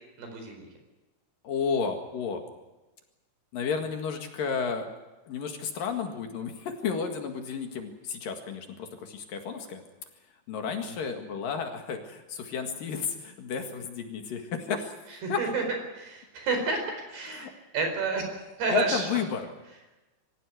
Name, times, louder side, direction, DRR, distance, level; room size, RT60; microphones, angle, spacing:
voice 1, 0.2-0.7 10.8-10.9 15.2-15.6 15.9-17.5 17.7-18.3 18.6-19.1, right 4 dB, 75° right, 5 dB, 6.6 m, -30 dB
voice 2, 1.4-2.4 3.5-4.9 5.3-9.8 10.5-14.9 15.3-15.5 17.2-17.5 18.7-19.5, left 6 dB, 65° left, 5 dB, 3.4 m, -32 dB
24.5 x 15.5 x 9.4 m, 1.1 s
omnidirectional pair, 4.6 m